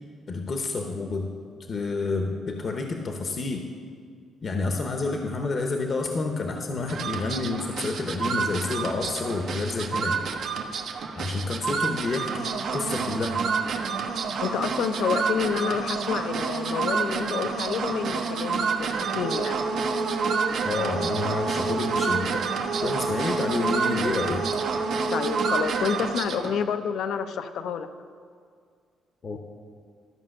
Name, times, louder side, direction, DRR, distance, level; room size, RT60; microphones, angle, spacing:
voice 1, 0.3-1.3 1.7-3.7 4.4-10.2 11.2-12.5 12.7-13.4 20.6-22.4 22.8-24.4 29.2-29.4, left 3 dB, 45° left, 3 dB, 0.9 m, -29 dB
sound 1, 6.9-26.6, right 5 dB, 70° right, 0.9 m, -28 dB
voice 2, 14.4-19.6 25.1-27.9, left 7 dB, 75° left, 9 dB, 0.6 m, -29 dB
12.5 x 5.3 x 6.5 m, 2.1 s
cardioid pair, 90°, 0 cm